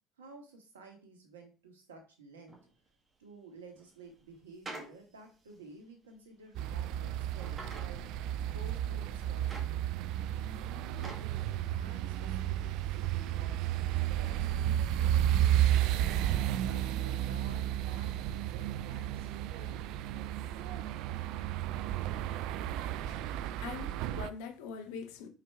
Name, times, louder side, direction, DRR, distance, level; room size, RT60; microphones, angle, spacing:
voice 1, 0.2-2.6 3.2-8.0 8.5-10.1 10.5-14.5 14.9-19.9, right 3 dB, 85° right, 1.5 m, -53 dB
sound 1, 2.5-2.7 3.8-5.0 5.5-5.6 6.5-6.9 7.4-7.9 8.5-8.6 9.2-10.2 10.5-11.3 11.8-11.9, right 2 dB, 30° right, 2.0 m, -47 dB
sound 2, 6.6-24.3, right 11 dB, 65° right, 0.4 m, -32 dB
voice 2, 23.6-25.3, left 6 dB, 70° left, 1.0 m, -43 dB
4.8 x 4.7 x 4.4 m
hypercardioid pair, 65°, 0 cm